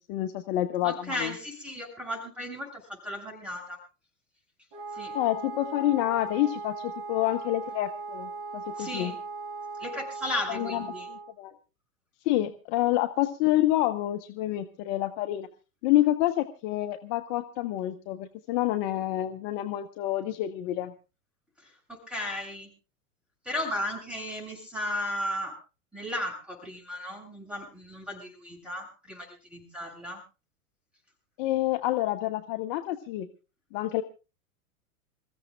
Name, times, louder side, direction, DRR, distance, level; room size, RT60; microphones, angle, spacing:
voice 1, 0.0-1.3 5.1-9.1 10.5-11.5 12.2-15.5 15.8-20.9 31.4-33.3 33.7-34.0, left 15 dB, 35° left, 8 dB, 1.1 m, -28 dB
voice 2, 0.8-3.8 4.9-5.1 8.8-9.2 9.8-11.1 21.6-22.7 23.4-25.6 25.9-30.2, left 1 dB, ahead, 1 dB, 7.4 m, -35 dB
Wind instrument woodwind instrument, 4.7-11.3, right 4 dB, 30° right, 1.5 m, -38 dB
27.5 x 15.5 x 2.3 m, 0.32 s
figure-of-eight pair, 95°, 44 cm